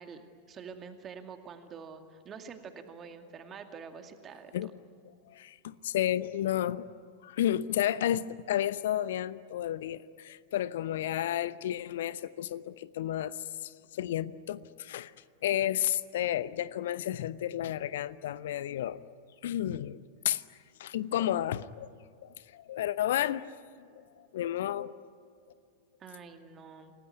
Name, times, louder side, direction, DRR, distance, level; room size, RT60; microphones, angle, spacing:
voice 1, 0.0-4.7 26.0-26.9, right 6 dB, 25° right, 6 dB, 2.2 m, -47 dB
voice 2, 5.3-6.8 7.2-15.1 15.4-19.0 19.4-20.0 20.2-20.4 20.8-21.9 22.2-23.5 23.8-24.9, left 12 dB, 55° left, 16 dB, 0.9 m, -32 dB
28.0 x 19.0 x 9.8 m, 2.3 s
figure-of-eight pair, 90°, 0 cm